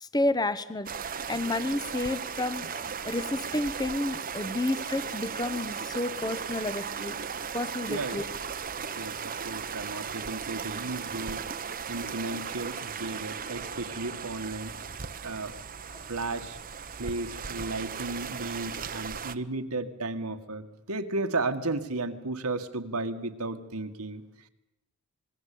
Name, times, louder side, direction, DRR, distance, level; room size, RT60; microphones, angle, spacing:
voice 1, 0.0-0.9 1.3-7.2 7.5-8.2, left 2 dB, 20° left, 14 dB, 1.1 m, -30 dB
sound 1, 0.9-19.4, right 6 dB, 40° right, 1.1 m, -37 dB
voice 2, 7.9-8.2 9.0-11.5 11.9-14.8 15.2-15.5 16.1-16.6 17.0-24.2, right 2 dB, 75° right, 7 dB, 2.0 m, -34 dB
27.5 x 21.0 x 8.7 m, 0.90 s
head